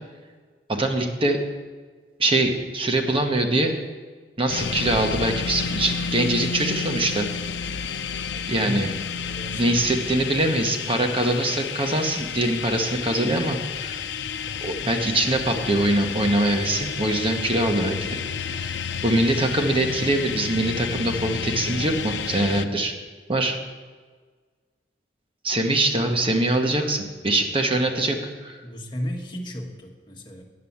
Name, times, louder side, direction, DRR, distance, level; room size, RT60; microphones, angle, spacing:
voice 1, 0.7-1.4 2.2-3.7 4.4-7.3 7.7-7.8 8.5-8.9 9.5-14.0 14.6-18.2 18.5-22.9 23.3-23.6 25.4-28.2 28.4-28.6, right 1 dB, 30° right, 4 dB, 1.0 m, -23 dB
sound 1, 4.5-22.7, left 6 dB, 80° left, 0.5 m, -31 dB
voice 2, 8.3-9.8 10.3-10.9 23.3-23.6 27.9-28.1 28.6-30.4, equal, 25° left, 0 dB, 1.4 m, -36 dB
9.6 x 6.7 x 7.2 m, 1.5 s
head